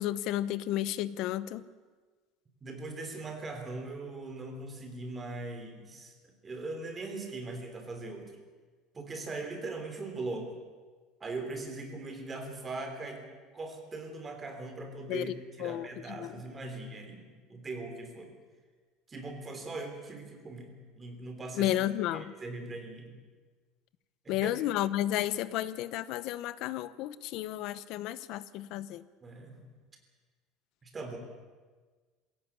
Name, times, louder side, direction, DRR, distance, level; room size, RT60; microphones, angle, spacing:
voice 1, 0.0-1.6 15.1-15.3 15.6-16.3 21.6-22.3 24.3-29.0, left 13 dB, 50° left, 17 dB, 0.9 m, -32 dB
voice 2, 2.6-6.1 6.4-8.3 8.9-10.5 11.2-13.2 13.5-15.3 15.6-18.3 19.1-21.8 22.1-23.1 24.2-24.5 29.2-29.7 30.8-31.2, right 2 dB, 15° right, 4 dB, 3.3 m, -40 dB
21.5 x 17.0 x 8.6 m, 1.4 s
cardioid pair, 165°, 0 cm